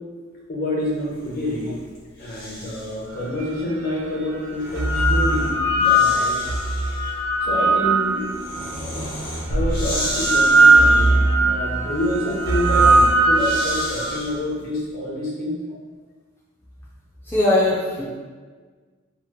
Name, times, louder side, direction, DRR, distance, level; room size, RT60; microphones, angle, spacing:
voice 1, 0.5-1.8 2.2-6.6 7.4-9.1 9.5-15.6, left 1 dB, 50° left, -5 dB, 0.7 m, -28 dB
Breathing, 1.1-3.1 4.3-14.6, equal, 75° left, 1.2 m, -34 dB
sound 1, 3.4-3.5 4.5-8.7 9.5-14.2, right 2 dB, 60° right, 0.4 m, -19 dB
voice 2, 17.2-18.2, left 1 dB, 10° left, -8 dB, 0.4 m, -20 dB
2.8 x 2.0 x 3.1 m, 1.4 s
head